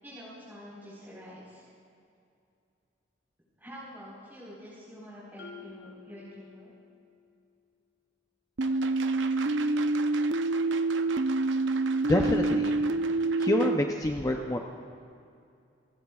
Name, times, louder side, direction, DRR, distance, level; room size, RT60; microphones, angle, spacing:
voice 1, 0.0-1.6 3.6-6.7, equal, 10° right, -10 dB, 4.3 m, -46 dB
Marimba xylophone, 5.4-7.1, left 5 dB, 90° left, 3.6 m, -50 dB
sound 1, 8.6-13.8, right 2 dB, 75° right, 0.6 m, -27 dB
voice 2, 12.0-12.7 13.4-14.6, left 1 dB, 20° left, 2 dB, 0.6 m, -27 dB
29.0 x 16.0 x 2.4 m, 2.5 s
head